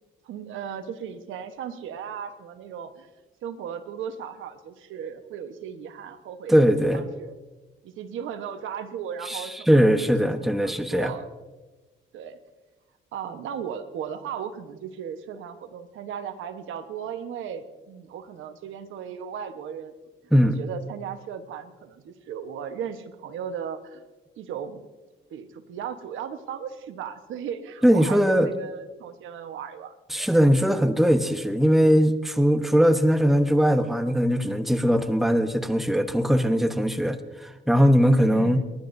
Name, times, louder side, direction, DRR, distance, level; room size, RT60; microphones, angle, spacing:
voice 1, 0.2-3.1 3.4-6.5 6.9-7.3 7.8-10.3 10.6-11.3 12.1-12.4 13.1-19.9 20.4-24.0 24.4-24.8 25.3-30.3 38.2-38.6, right 8 dB, 80° right, 8 dB, 1.2 m, -36 dB
voice 2, 6.5-7.0 9.3-11.1 20.3-20.6 27.8-28.5 30.1-38.6, equal, ahead, 8 dB, 1.0 m, -20 dB
29.5 x 11.5 x 2.7 m, 1.2 s
cardioid pair, 90°, 20 cm